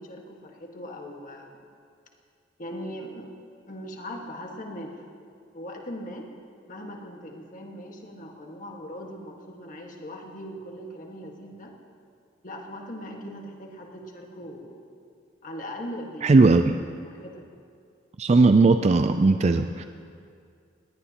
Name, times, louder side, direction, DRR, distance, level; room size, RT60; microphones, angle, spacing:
voice 1, 0.0-1.7 2.6-3.3 3.7-5.0 5.5-6.3 6.7-11.7 12.4-14.8 15.4-16.5 17.0-17.5, equal, 45° left, 1 dB, 1.7 m, -39 dB
voice 2, 16.2-16.8 18.2-19.8, right 3 dB, 35° right, 8 dB, 0.4 m, -18 dB
20.0 x 17.5 x 3.0 m, 2.3 s
head